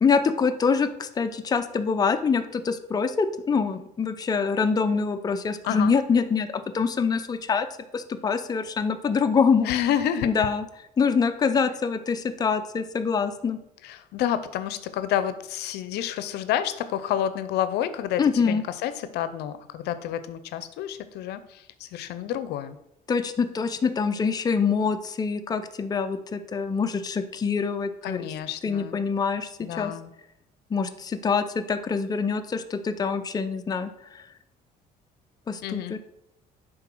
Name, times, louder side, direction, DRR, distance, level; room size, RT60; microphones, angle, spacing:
voice 1, 0.0-7.7 7.9-9.7 10.2-10.6 11.0-13.6 18.2-18.6 23.1-28.3 28.6-29.9 30.7-34.2 35.5-36.0, left 5 dB, 25° left, 8 dB, 0.5 m, -25 dB
voice 2, 5.6-5.9 9.6-10.5 13.8-22.8 28.0-29.0 29.6-30.1 35.6-36.0, left 10 dB, 80° left, 13 dB, 0.6 m, -29 dB
10.0 x 3.9 x 4.5 m, 0.82 s
cardioid pair, 110°, 17 cm